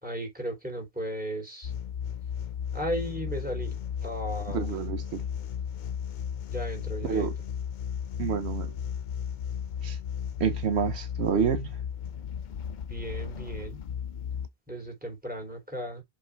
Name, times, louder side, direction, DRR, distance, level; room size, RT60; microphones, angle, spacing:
voice 1, 0.0-1.7 2.7-4.7 6.5-7.3 12.9-13.8 14.7-16.0, right 1 dB, 10° right, 3.5 m, -35 dB
sound 1, 1.6-14.5, left 8 dB, 55° left, 0.6 m, -35 dB
voice 2, 4.5-5.2 7.0-7.3 8.2-8.8 9.8-10.0 10.4-11.8, right 6 dB, 85° right, 1.1 m, -28 dB
7.4 x 3.8 x 3.4 m
omnidirectional pair, 1.1 m